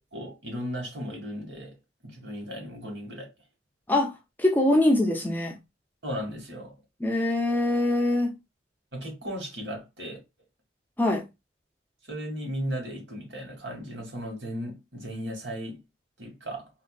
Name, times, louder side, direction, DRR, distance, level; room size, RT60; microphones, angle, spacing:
voice 1, 0.1-1.8 2.0-3.3 6.0-6.7 8.9-10.2 12.1-15.8 16.2-16.7, equal, 85° right, 2.0 m, -36 dB
voice 2, 3.9-5.6 7.0-8.4 11.0-11.3, left 1 dB, 10° left, 0.6 m, -23 dB
4.1 x 2.6 x 2.4 m
head